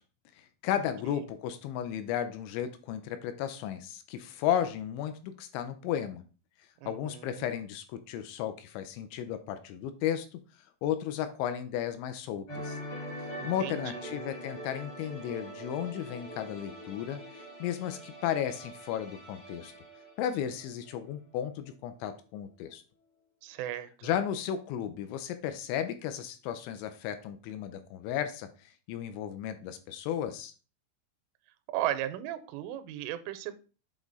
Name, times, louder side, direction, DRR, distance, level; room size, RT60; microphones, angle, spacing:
voice 1, 0.3-6.2 6.9-12.8 13.2-19.7 20.2-22.8 24.0-30.5, left 10 dB, 80° left, 9 dB, 2.8 m, -34 dB
voice 2, 6.8-7.5 13.4-14.2 23.4-24.1 31.7-33.6, right 12 dB, 85° right, 12 dB, 3.1 m, -36 dB
sound 1, 12.5-21.2 21.4-21.7, equal, 45° left, 1.2 m, -43 dB
8.2 x 3.6 x 3.9 m, 0.35 s
omnidirectional pair, 5.6 m